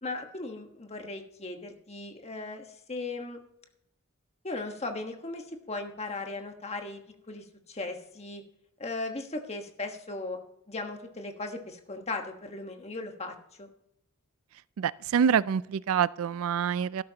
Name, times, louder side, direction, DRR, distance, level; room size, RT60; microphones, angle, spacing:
voice 1, 0.0-3.4 4.4-7.0 7.3-8.4 8.8-10.4 10.7-13.7, left 2 dB, 30° left, 4 dB, 1.3 m, -37 dB
voice 2, 14.8-17.0, right 7 dB, 70° right, 19 dB, 0.3 m, -26 dB
13.0 x 12.0 x 2.9 m, 0.76 s
head